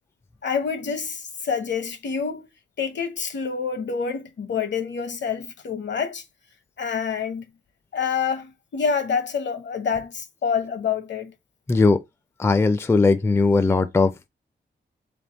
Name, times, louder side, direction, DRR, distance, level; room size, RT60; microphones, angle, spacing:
voice 1, 0.4-2.4 2.8-6.2 6.8-7.4 7.9-11.3, left 6 dB, 70° left, 0.9 m, -27 dB
voice 2, 11.7-12.0 12.4-14.3, left 3 dB, 15° left, 0.3 m, -19 dB
3.5 x 3.0 x 4.0 m
wide cardioid pair, 135°, 19 cm